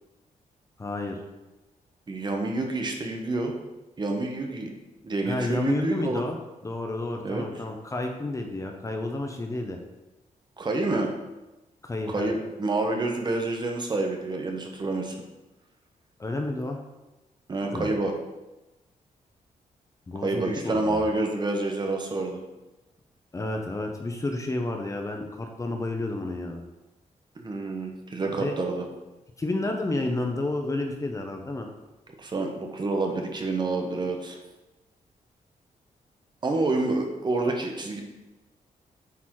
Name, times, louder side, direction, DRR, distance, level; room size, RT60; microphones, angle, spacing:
voice 1, 0.8-1.2 5.2-6.4 6.6-9.8 11.8-12.3 16.2-16.8 17.7-17.9 20.1-21.1 23.3-26.6 28.3-28.6 29.4-31.7, left 2 dB, 20° left, 3 dB, 0.8 m, -30 dB
voice 2, 2.1-3.5 4.0-4.7 5.0-6.2 7.2-7.5 10.6-11.1 12.1-15.1 17.5-18.1 20.2-22.4 27.4-28.9 32.2-34.4 36.4-38.0, right 2 dB, 35° right, 2 dB, 1.1 m, -28 dB
8.4 x 4.1 x 4.7 m, 1.0 s
wide cardioid pair, 135°, 14 cm